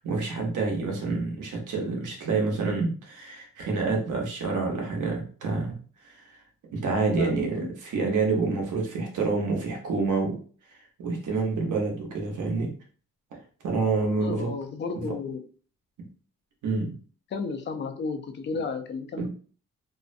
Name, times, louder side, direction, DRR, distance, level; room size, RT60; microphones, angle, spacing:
voice 1, 0.0-5.8 6.0-6.4 6.7-10.4 10.7-12.7 13.6-14.5 14.9-15.1 16.6-16.9 19.2-19.3, right 4 dB, 70° right, 1 dB, 0.9 m, -28 dB
voice 2, 7.2-7.7 14.2-15.5 17.3-19.3, left 4 dB, 35° left, 6 dB, 0.4 m, -33 dB
2.6 x 2.1 x 2.5 m, 0.43 s
cardioid pair, 95°, 32 cm